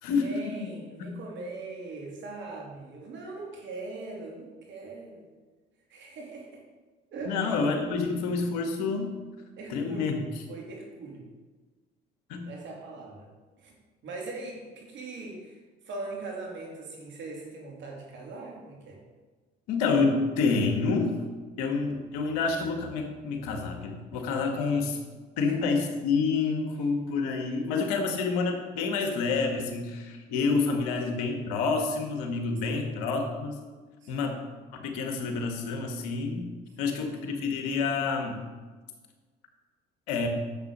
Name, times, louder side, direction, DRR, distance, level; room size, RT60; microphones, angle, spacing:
voice 1, 0.1-5.2 5.9-6.6 7.1-7.4 9.6-11.3 12.5-13.3 13.6-13.7 14.0-15.6 15.8-19.0 25.4-25.6 26.8-26.9 32.7-33.0 34.0-34.4 36.8-37.1, right 3 dB, 65° right, -1 dB, 3.2 m, -41 dB
voice 2, 7.3-9.1 9.7-10.2 12.3-12.4 19.7-21.1 21.6-25.0 25.4-33.6 34.1-34.4 34.7-36.5 36.8-38.4 40.1-40.3, left 4 dB, 85° left, 3 dB, 1.8 m, -28 dB
10.5 x 7.6 x 5.6 m, 1.4 s
supercardioid pair, 70°, 21 cm